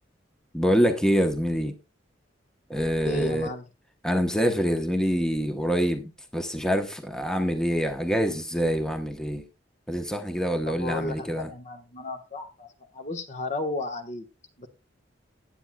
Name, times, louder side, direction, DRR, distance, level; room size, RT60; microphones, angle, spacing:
voice 1, 0.5-1.7 2.7-3.5 4.0-9.4 9.9-11.5, equal, 5° left, 0.9 m, -25 dB
voice 2, 3.0-3.7 10.7-14.2 14.6-14.7, left 2 dB, 40° left, 1.2 m, -34 dB
16.0 x 9.0 x 2.2 m
head